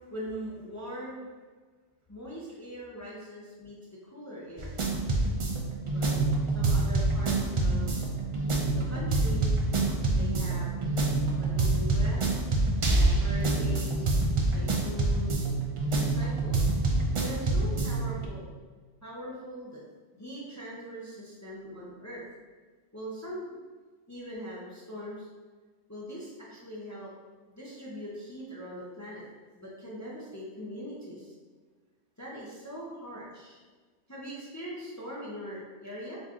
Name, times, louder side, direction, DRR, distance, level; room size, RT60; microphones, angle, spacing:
voice 1, 0.1-1.3 2.1-3.8 4.0-4.8 5.9-6.2 6.5-8.0 8.9-9.5 10.1-10.8 11.4-12.4 12.8-14.1 14.5-15.5 15.9-16.8 17.2-18.5 19.0-19.8 20.1-22.3 22.9-23.4 24.1-25.3 25.9-27.1 27.4-29.2 29.6-31.3 32.2-33.6 34.1-36.2, equal, 20° left, -6 dB, 0.6 m, -41 dB
sound 1, 4.6-18.3, right 2 dB, 45° right, 0.4 m, -27 dB
4.0 x 3.0 x 3.6 m, 1.4 s
omnidirectional pair, 1.2 m